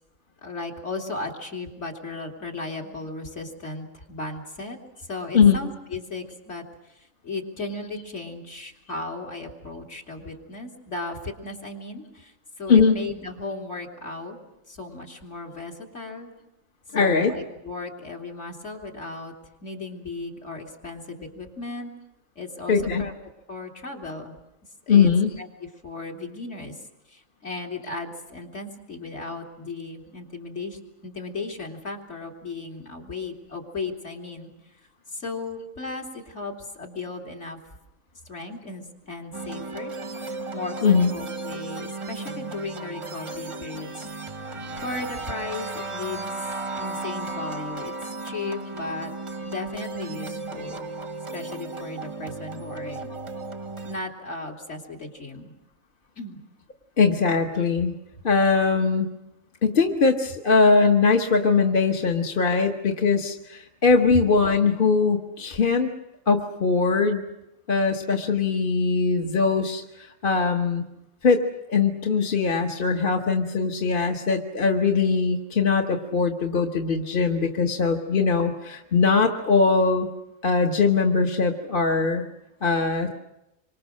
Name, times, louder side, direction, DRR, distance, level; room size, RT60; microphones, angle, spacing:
voice 1, 0.4-6.6 6.9-14.4 14.7-16.3 16.9-19.3 19.6-21.9 22.3-23.1 23.5-24.3 24.9-25.1 25.4-26.8 27.1-34.5 35.1-37.6 38.2-39.9 40.2-44.1 44.7-46.5 46.7-49.1 49.4-50.8 51.3-53.1 53.8-55.5 56.2-56.4, left 3 dB, 55° left, 0 dB, 3.4 m, -36 dB
voice 2, 16.9-17.3 22.7-23.1 24.9-25.4 40.8-41.1 43.7-43.8 44.5-44.8 57.0-57.9 58.2-59.1 59.6-65.9 66.3-67.2 67.7-70.8 71.2-71.4 71.7-80.1 80.4-82.2 82.6-83.2, left 4 dB, 40° left, 3 dB, 1.4 m, -21 dB
sound 1, 39.3-54.0, right 3 dB, 25° right, 0.8 m, -35 dB
27.0 x 24.5 x 6.4 m, 0.89 s
omnidirectional pair, 1.4 m